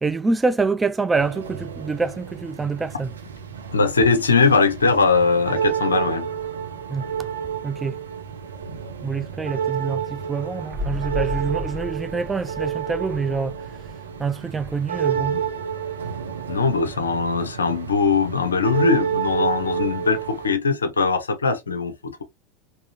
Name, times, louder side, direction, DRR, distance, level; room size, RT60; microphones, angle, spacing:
voice 1, 0.0-3.1 6.9-7.3 7.6-8.0 9.0-13.9 14.2-15.4, right 4 dB, 15° right, 0.3 m, -26 dB
sound 1, 1.2-20.6, right 8 dB, 75° right, 0.9 m, -30 dB
voice 2, 3.7-6.3 15.1-15.4 16.5-22.2, left 4 dB, 80° left, 0.5 m, -21 dB
sound 2, 10.7-14.4 14.7-14.8, left 3 dB, 35° right, 0.9 m, -34 dB
3.6 x 2.7 x 2.8 m
figure-of-eight pair, 80°, 0 cm